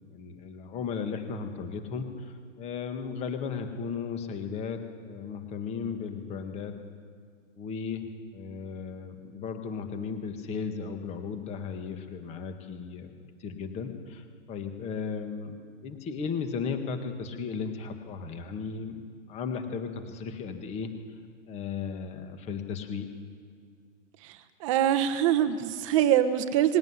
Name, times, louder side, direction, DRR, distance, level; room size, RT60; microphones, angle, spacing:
voice 1, 0.1-6.7 7.6-8.0 8.3-13.1 13.4-19.0 19.3-20.9 21.5-23.1, left 5 dB, 15° left, 6 dB, 1.7 m, -35 dB
voice 2, 24.6-26.8, right 11 dB, 25° right, 10 dB, 1.0 m, -24 dB
20.0 x 17.5 x 9.7 m, 2.1 s
hypercardioid pair, 150°, 38 cm